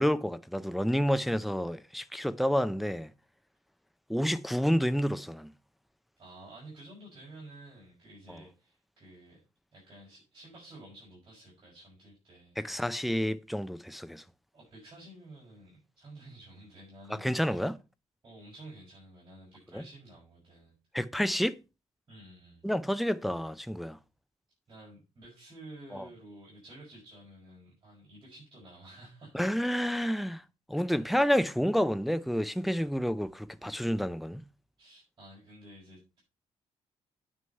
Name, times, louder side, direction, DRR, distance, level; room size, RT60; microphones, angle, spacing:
voice 1, 0.0-3.1 4.1-5.5 12.6-14.2 17.2-17.8 19.7-19.8 20.9-21.6 22.6-24.0 25.9-26.0 29.3-30.4 30.7-34.4, equal, ahead, 0.5 m, -29 dB
voice 2, 6.2-9.4 9.7-13.2 14.5-17.6 18.2-20.8 22.1-22.7 24.7-29.5 30.7-31.0 34.8-36.2, right 1 dB, 35° right, 6.1 m, -51 dB
9.3 x 6.4 x 5.4 m
cardioid pair, 145°, 12 cm